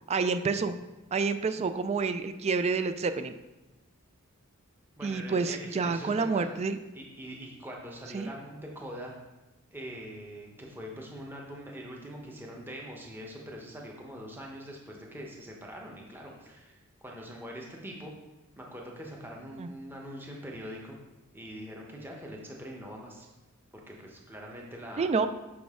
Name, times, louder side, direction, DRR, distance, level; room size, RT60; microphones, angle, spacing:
voice 1, 0.1-0.8 1.1-3.3 5.0-6.8 8.1-8.3 19.6-19.7 25.0-25.3, right 4 dB, 30° right, 10 dB, 0.3 m, -28 dB
voice 2, 5.0-6.5 6.9-9.1 9.7-16.7 17.0-18.1 18.6-21.0 21.3-23.3 23.9-25.1, equal, 10° right, -1 dB, 0.9 m, -43 dB
6.1 x 5.8 x 3.6 m, 1.0 s
head